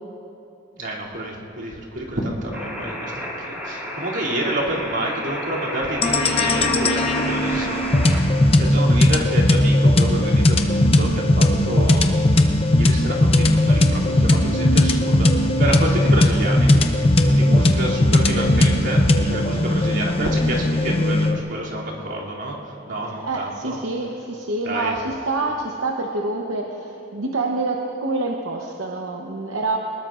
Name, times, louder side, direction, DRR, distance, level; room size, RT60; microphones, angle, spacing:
voice 1, 0.8-16.8 17.3-22.6 22.9-23.8 24.6-24.9, right 1 dB, 65° right, -5 dB, 2.9 m, -28 dB
sound 1, 2.5-8.2, equal, 10° right, 3.2 m, -31 dB
sound 2, 6.0-21.4, left 1 dB, 30° left, 0.7 m, -18 dB
voice 2, 17.5-17.8 23.2-29.8, right 2 dB, 85° right, 0 dB, 1.0 m, -26 dB
23.0 x 20.0 x 2.5 m, 2.9 s
head